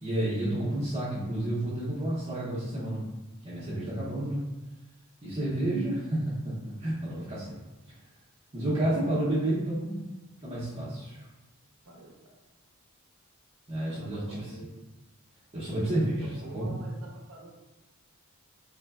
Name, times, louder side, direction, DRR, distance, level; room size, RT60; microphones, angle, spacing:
voice 1, 0.0-3.0 3.4-4.4 5.2-6.2 6.6-7.6 8.5-10.0 10.4-11.2 13.7-14.5 15.5-16.3 16.5-16.7, right 1 dB, 30° right, -12 dB, 0.7 m, -30 dB
voice 2, 13.9-14.7 15.8-17.5, right 1 dB, 65° right, -3 dB, 0.7 m, -46 dB
3.3 x 2.1 x 2.3 m, 1.1 s
head